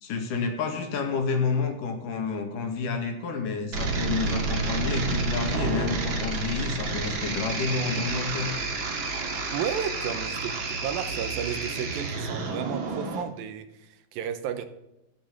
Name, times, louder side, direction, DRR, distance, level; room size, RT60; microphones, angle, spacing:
voice 1, 0.0-8.5 10.0-10.1, left 4 dB, 60° left, 3.1 m, -29 dB
sound 1, 3.7-13.2, right 3 dB, 40° right, 1.9 m, -30 dB
voice 2, 9.5-14.7, right 8 dB, 75° right, 2.5 m, -33 dB
14.5 x 8.6 x 7.3 m
omnidirectional pair, 4.5 m